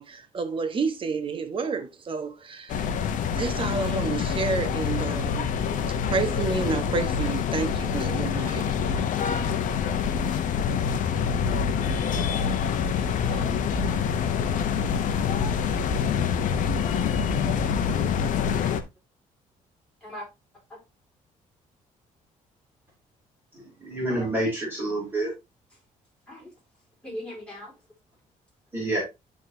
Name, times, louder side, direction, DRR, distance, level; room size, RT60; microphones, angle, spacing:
voice 1, 0.0-2.9 3.3-5.5 6.1-8.7, right 4 dB, 40° right, 1.2 m, -30 dB
sound 1, 2.7-18.8, left 7 dB, 65° left, 0.8 m, -26 dB
voice 2, 13.0-13.7 17.5-18.8 20.0-20.3 20.7-20.8 24.1-24.3 26.3-26.5 27.0-27.7, equal, 5° left, 4.1 m, -42 dB
voice 3, 23.8-25.3 28.7-29.0, right 1 dB, 15° right, 3.3 m, -27 dB
11.0 x 3.7 x 2.8 m
cardioid pair, 115°, 14 cm